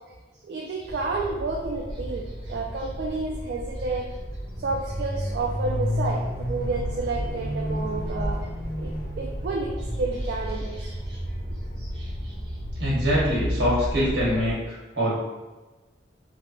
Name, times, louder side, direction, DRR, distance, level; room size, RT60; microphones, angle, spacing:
voice 1, 0.4-4.1 4.6-8.5 8.8-8.9 9.2-9.7 10.0-11.5, right 3 dB, 65° right, -1 dB, 0.3 m, -30 dB
sound 1, 0.9-14.5, equal, 60° left, 1.1 m, -31 dB
voice 2, 11.8-12.3 12.8-15.2, equal, 85° right, -6 dB, 1.2 m, -25 dB
3.2 x 2.1 x 2.6 m, 1.2 s
head